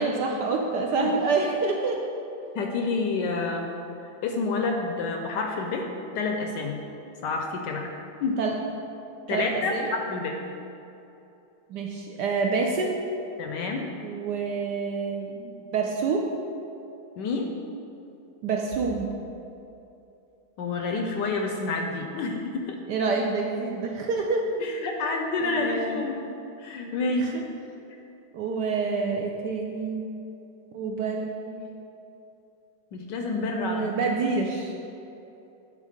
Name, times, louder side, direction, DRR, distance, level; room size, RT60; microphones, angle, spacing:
voice 1, 0.0-2.0 8.4-8.5 9.3-9.9 11.7-13.1 14.0-16.2 18.4-19.1 22.9-24.4 25.4-26.0 27.1-27.4 28.3-30.1 30.7-31.6 33.5-34.7, right 4 dB, 70° right, 1 dB, 1.0 m, -27 dB
voice 2, 2.5-3.7 4.2-5.9 6.1-6.8 7.2-7.9 8.2-8.4 9.3-10.4 13.4-13.8 17.2-17.5 20.6-22.8 24.6-26.3 26.6-27.3 32.9-33.9, left 3 dB, 75° left, 3 dB, 1.1 m, -28 dB
9.1 x 3.8 x 5.0 m, 2.8 s
omnidirectional pair, 2.2 m